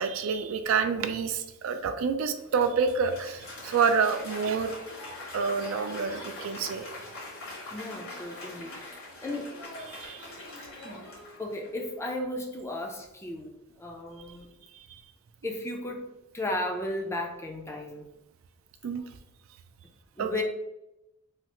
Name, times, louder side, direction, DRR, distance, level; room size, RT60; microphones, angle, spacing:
voice 1, 0.0-4.7 5.3-6.8 9.9-10.3 14.9-15.0 18.8-19.0 20.2-20.4, right 5 dB, 70° right, 9 dB, 0.3 m, -28 dB
Applause, 2.3-11.9, left 2 dB, 80° left, 1.4 m, -43 dB
voice 2, 7.7-9.5 10.8-11.1 11.4-14.5 15.4-18.1 20.2-20.4, left 1 dB, 15° left, 2 dB, 0.3 m, -35 dB
3.2 x 2.3 x 2.9 m, 0.91 s
head